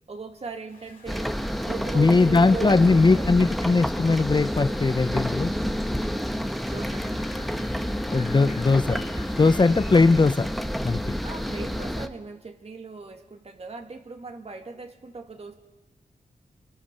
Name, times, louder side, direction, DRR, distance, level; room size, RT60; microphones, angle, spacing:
voice 1, 0.1-1.3 1.6-3.3 6.7-7.1 11.2-15.6, right 4 dB, 50° right, 5 dB, 2.0 m, -39 dB
sound 1, 0.7-11.2, left 4 dB, 85° left, 2.4 m, -51 dB
sound 2, 1.1-12.1, equal, ahead, 1.0 m, -29 dB
voice 2, 1.9-5.5 8.1-9.0 9.4-10.5 10.8-11.1, left 3 dB, 35° left, 13 dB, 0.6 m, -20 dB
27.0 x 23.0 x 5.7 m, 1.1 s
wide cardioid pair, 85°, 14 cm